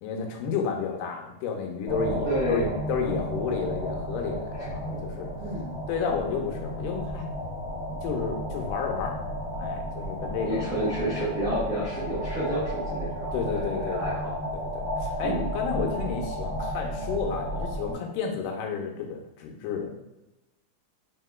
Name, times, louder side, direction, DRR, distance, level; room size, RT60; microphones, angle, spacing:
voice 1, 0.0-5.3 5.9-7.2 8.0-9.2 9.5-10.7 13.3-19.9, left 6 dB, 90° left, 2 dB, 2.2 m, -31 dB
sound 1, 1.9-17.9, equal, 60° left, 0.7 m, -33 dB
voice 2, 2.2-2.8 4.9-5.1 5.4-5.7 10.4-14.3 15.2-15.5 15.7-15.9, right 1 dB, 85° right, -10 dB, 0.7 m, -30 dB
4.8 x 3.7 x 2.2 m, 0.95 s
omnidirectional pair, 3.7 m